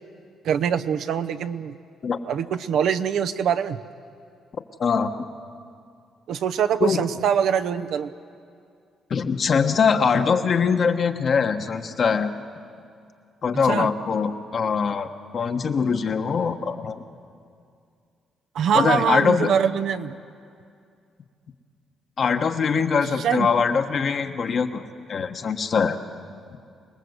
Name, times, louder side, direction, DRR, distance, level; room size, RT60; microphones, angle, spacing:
voice 1, 0.4-1.7 2.3-3.8 6.3-8.1 13.6-13.9 18.5-20.2 23.2-23.5, right 8 dB, 75° right, 8 dB, 0.8 m, -23 dB
voice 2, 9.1-12.3 13.4-15.1 15.3-17.0 18.7-19.5 22.2-26.0, left 6 dB, 50° left, 6 dB, 1.3 m, -22 dB
27.0 x 19.0 x 8.1 m, 2.4 s
cardioid pair, 90°, 0 cm